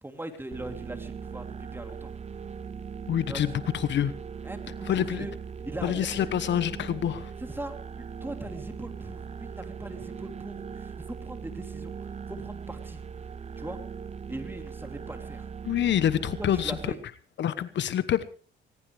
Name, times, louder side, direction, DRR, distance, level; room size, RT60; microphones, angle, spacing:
voice 1, 0.0-2.1 3.3-3.6 4.4-5.3 5.6-6.3 7.4-11.9 12.3-13.0 13.6-13.8 14.3-15.5 16.4-17.0, right 1 dB, 10° right, 6 dB, 3.1 m, -40 dB
sound 1, 0.5-16.9, right 6 dB, 35° right, 0.7 m, -39 dB
voice 2, 3.1-4.1 4.9-5.3 5.8-7.3 15.6-16.9 17.4-18.2, left 10 dB, 65° left, 14 dB, 1.1 m, -27 dB
20.0 x 19.5 x 3.4 m, 0.37 s
cardioid pair, 90°, 20 cm